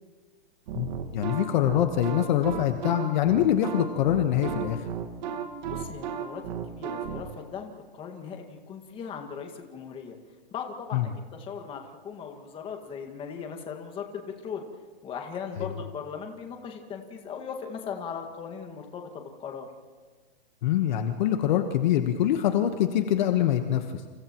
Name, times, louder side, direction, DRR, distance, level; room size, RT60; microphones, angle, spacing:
sound 1, 0.7-7.2, right 8 dB, 45° right, 1.8 m, -34 dB
voice 1, 1.1-4.9 10.9-11.0 15.6-15.7 20.6-23.9, left 11 dB, 45° left, 6 dB, 1.3 m, -24 dB
voice 2, 5.7-10.2 10.5-14.6 15.0-19.7, left 6 dB, 15° left, 4 dB, 1.9 m, -38 dB
29.5 x 29.0 x 3.1 m, 1.5 s
hypercardioid pair, 155°, 31 cm